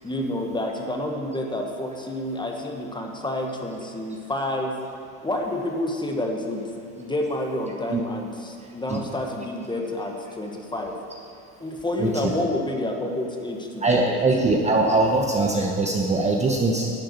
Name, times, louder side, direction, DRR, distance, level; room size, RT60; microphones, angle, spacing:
voice 1, 0.0-4.7 5.2-6.7 7.0-10.9 11.6-14.2, left 1 dB, 10° left, 2 dB, 1.3 m, -29 dB
voice 2, 13.8-16.9, right 2 dB, 15° right, 0 dB, 0.9 m, -21 dB
11.0 x 7.6 x 6.8 m, 2.4 s
supercardioid pair, 105°, 45 cm